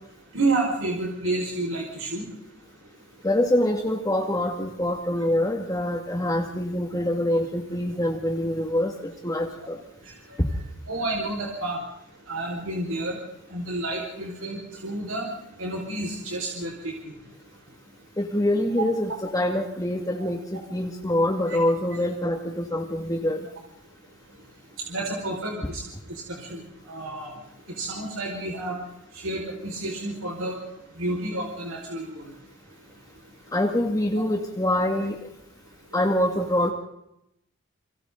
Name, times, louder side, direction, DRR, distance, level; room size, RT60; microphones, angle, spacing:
voice 1, 0.3-2.2 6.9-7.0 10.9-11.8 12.3-13.2 13.5-15.3 15.6-17.1 20.2-20.3 21.5-21.6 24.9-25.8 26.3-26.6 26.9-27.3 27.7-28.8 29.1-30.6 31.0-32.3, right 2 dB, 75° right, -1 dB, 5.2 m, -30 dB
voice 2, 3.2-9.8 18.2-23.5 33.5-35.2 35.9-36.7, left 1 dB, 15° left, 2 dB, 2.1 m, -25 dB
30.0 x 25.0 x 3.9 m, 0.80 s
head